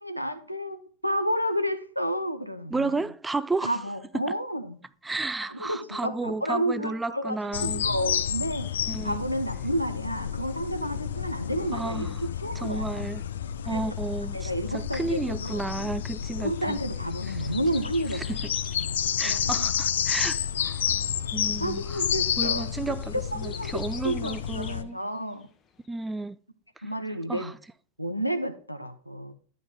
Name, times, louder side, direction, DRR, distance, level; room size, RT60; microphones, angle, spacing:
voice 1, 0.0-3.0 3.6-4.8 5.5-12.1 12.4-13.0 13.6-13.8 14.3-15.6 16.4-18.4 18.7-19.7 21.6-22.7 23.4-23.7 24.0-25.5 26.8-27.5 28.0-29.3, equal, 90° right, 0.9 m, -31 dB
voice 2, 2.7-3.8 4.1-4.2 5.0-7.9 8.9-9.2 11.7-12.2 12.6-13.2 13.7-16.8 17.3-17.4 18.1-18.4 19.2-20.9 21.3-22.0 22.4-25.0 25.9-26.4 26.8-26.9 27.3-27.6, right 3 dB, 10° right, 0.3 m, -32 dB
sound 1, 7.5-24.8, left 9 dB, 65° left, 0.5 m, -30 dB
sound 2, 15.4-25.4 25.8-25.9, left 7 dB, 25° left, 0.9 m, -47 dB
11.0 x 5.1 x 3.6 m
figure-of-eight pair, 90°, 0 cm